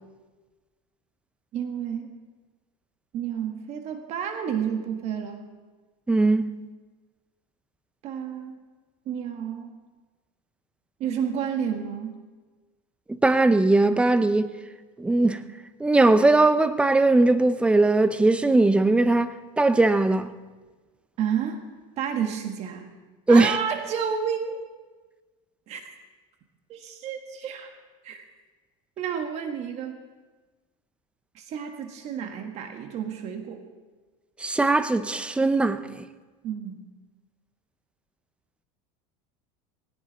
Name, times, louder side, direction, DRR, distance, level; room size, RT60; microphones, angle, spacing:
voice 1, 1.5-2.1 3.1-5.5 8.0-8.6 9.0-9.8 11.0-12.2 21.2-21.6 22.0-22.9 23.3-24.6 25.7-25.9 26.7-27.7 28.0-28.2 29.0-30.0 31.3-33.6 36.4-36.8, right 8 dB, 40° right, 1.5 m, -30 dB
voice 2, 6.1-6.5 13.2-14.5 15.0-15.4 15.8-20.3 23.3-23.5 34.4-35.8, right 2 dB, 5° right, 0.5 m, -19 dB
18.5 x 17.5 x 4.1 m
supercardioid pair, 155°, 17 cm